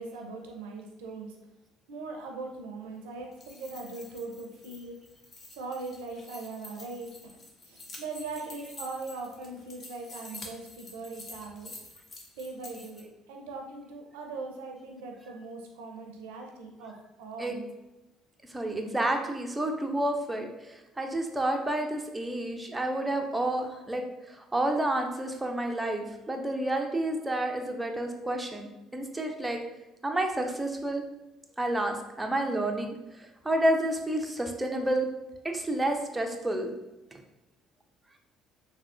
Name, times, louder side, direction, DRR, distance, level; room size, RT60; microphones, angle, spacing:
voice 1, 0.0-1.4 1.9-5.0 5.5-7.4 7.6-11.7 12.4-17.6, right 3 dB, 80° right, 2 dB, 0.5 m, -40 dB
sound 1, 3.2-13.0, left 2 dB, 40° left, 0.7 m, -48 dB
voice 2, 18.5-29.6 30.0-31.0 31.6-35.1 35.4-36.7 37.1-37.2, right 1 dB, 15° right, 3 dB, 0.5 m, -30 dB
3.4 x 2.4 x 2.4 m, 0.99 s
hypercardioid pair, 60°, 0 cm